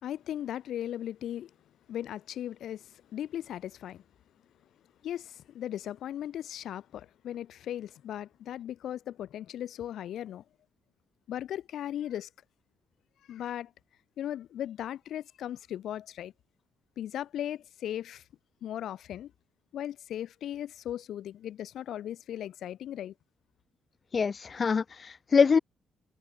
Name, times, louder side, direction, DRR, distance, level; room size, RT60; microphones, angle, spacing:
voice 1, 0.0-1.5 1.9-4.0 5.0-10.4 11.3-12.3 13.3-13.7 14.2-16.3 17.0-18.2 18.6-19.3 19.7-23.1, left 11 dB, 70° left, 2.1 m, -37 dB
voice 2, 24.1-25.6, left 5 dB, 40° left, 1.2 m, -24 dB
cardioid pair, 90°, 0 cm